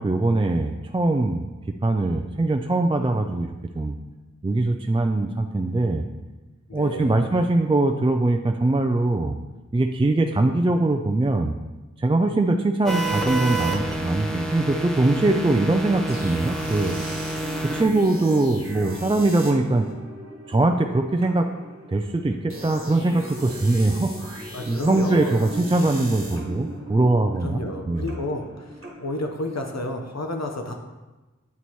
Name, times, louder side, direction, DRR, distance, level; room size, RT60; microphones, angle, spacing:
voice 1, 0.0-3.5 3.8-4.0 4.4-6.0 6.7-9.4 9.7-11.5 12.0-17.0 17.7-19.9 20.5-21.5 21.9-28.1, right 2 dB, 20° right, 4 dB, 0.4 m, -22 dB
voice 2, 6.7-7.3 24.5-25.4 27.4-30.7, left 1 dB, 60° left, 3 dB, 0.9 m, -31 dB
sound 1, 12.9-17.8, right 2 dB, ahead, 0.8 m, -28 dB
sound 2, 16.1-29.8, right 1 dB, 45° right, 1.4 m, -38 dB
9.5 x 4.1 x 3.0 m, 1.1 s
wide cardioid pair, 45°, 30 cm